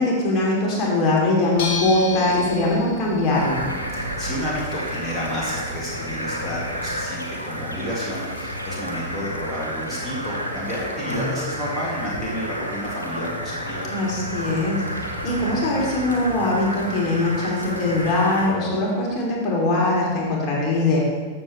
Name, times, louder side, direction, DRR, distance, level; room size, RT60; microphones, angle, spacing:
voice 1, 0.0-3.6 11.1-11.2 13.9-21.0, left 2 dB, 35° left, -3 dB, 2.9 m, -22 dB
sound 1, 1.6-6.9, left 3 dB, 50° left, 1.4 m, -35 dB
sound 2, 3.3-18.5, equal, 85° left, 1.2 m, -31 dB
voice 2, 3.9-13.9, equal, 5° left, -7 dB, 2.4 m, -31 dB
14.0 x 7.2 x 3.2 m, 1.4 s
figure-of-eight pair, 90°, 0 cm